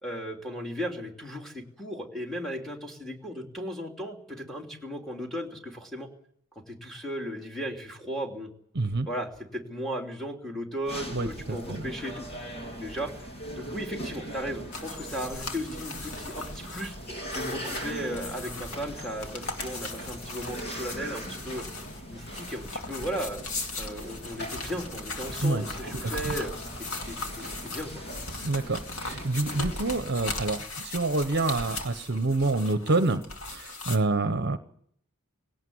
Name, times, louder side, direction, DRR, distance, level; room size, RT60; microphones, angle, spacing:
voice 1, 0.0-6.1 6.7-8.5 9.1-12.3 12.8-13.1 13.6-17.0 17.3-21.6 22.1-23.4 23.8-26.5 26.8-27.9, equal, ahead, 0 dB, 3.1 m, -36 dB
voice 2, 8.7-9.1 11.1-11.8 25.4-25.6 26.0-26.3 28.4-33.2 33.5-34.6, right 2 dB, 50° right, 10 dB, 1.0 m, -27 dB
sound 1, 10.8-30.0, equal, 50° left, 3.0 m, -40 dB
sound 2, 14.7-34.0, left 3 dB, 70° left, 2.4 m, -38 dB
19.0 x 17.5 x 9.5 m, 0.69 s
head